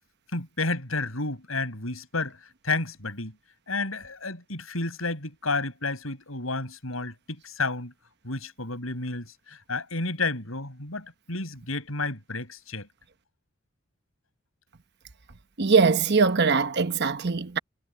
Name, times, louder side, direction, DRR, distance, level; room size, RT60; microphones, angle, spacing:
voice 1, 0.3-2.4 2.6-3.3 3.7-7.9 8.2-12.9, left 3 dB, 85° left, 7.3 m, -31 dB
voice 2, 15.6-17.6, right 4 dB, 55° right, 1.1 m, -21 dB
head